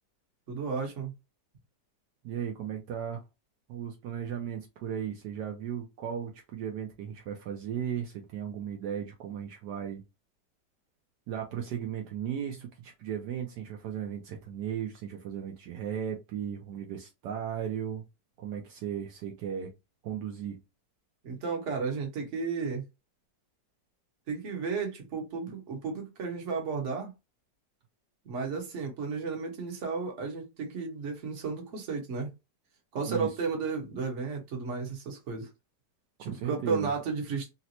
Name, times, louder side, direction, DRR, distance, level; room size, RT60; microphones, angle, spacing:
voice 1, 0.5-1.1 21.2-22.8 24.3-27.1 28.2-32.3 32.9-35.5 36.2-37.5, right 5 dB, 50° right, 1.2 m, -33 dB
voice 2, 2.2-3.2 3.7-10.0 11.3-18.0 18.4-19.7 20.0-20.6 33.0-33.3 36.2-36.9, right 9 dB, 75° right, 1.2 m, -36 dB
4.0 x 2.1 x 2.8 m
omnidirectional pair, 1.9 m